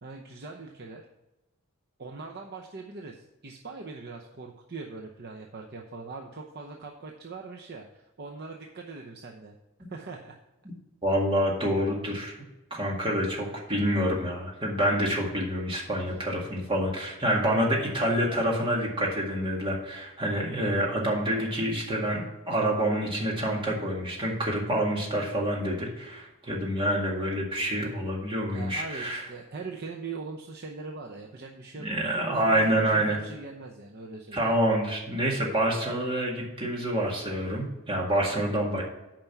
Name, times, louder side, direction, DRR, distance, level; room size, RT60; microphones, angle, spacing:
voice 1, 0.0-1.0 2.0-9.6 9.9-10.4 27.8-27.9 28.5-34.6, right 4 dB, 45° right, 1 dB, 0.7 m, -41 dB
voice 2, 11.0-12.4 12.7-29.3 31.8-33.2 34.3-38.8, right 1 dB, 25° right, -2 dB, 2.0 m, -27 dB
9.0 x 5.2 x 5.9 m, 1.0 s
head